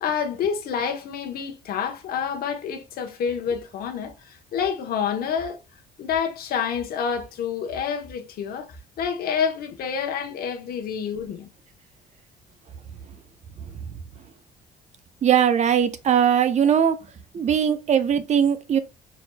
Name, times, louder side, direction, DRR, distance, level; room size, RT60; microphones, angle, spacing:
voice 1, 0.0-5.6 6.0-11.5, left 7 dB, 60° left, 1.0 m, -28 dB
voice 2, 15.2-17.0 17.3-18.8, right 8 dB, 45° right, 0.7 m, -20 dB
4.3 x 4.1 x 2.2 m
cardioid pair, 110°, 17 cm